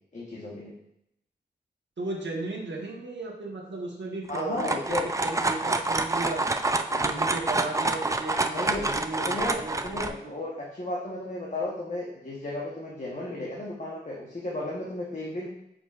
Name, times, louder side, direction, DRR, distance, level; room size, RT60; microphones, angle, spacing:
voice 1, 0.1-0.7 4.3-5.1 8.5-8.9 9.3-15.5, left 2 dB, 40° left, -4 dB, 1.1 m, -34 dB
voice 2, 2.0-6.4 6.9-10.3, right 2 dB, 90° right, -1 dB, 1.2 m, -36 dB
sound 1, 4.3-10.1, right 2 dB, 15° right, 0.4 m, -27 dB
7.8 x 5.2 x 2.4 m, 0.77 s
wide cardioid pair, 85°, 18 cm